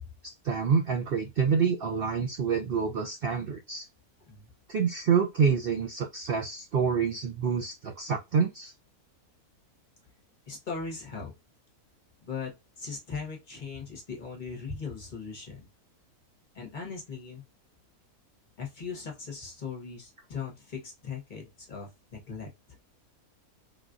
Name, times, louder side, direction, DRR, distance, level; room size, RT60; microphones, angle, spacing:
voice 1, 0.2-3.9 4.7-8.7, right 6 dB, 80° right, 0.5 m, -27 dB
voice 2, 10.5-11.3 12.2-15.7 16.5-17.5 18.6-22.5, left 5 dB, 35° left, 1.0 m, -39 dB
3.6 x 2.3 x 2.5 m
omnidirectional pair, 1.6 m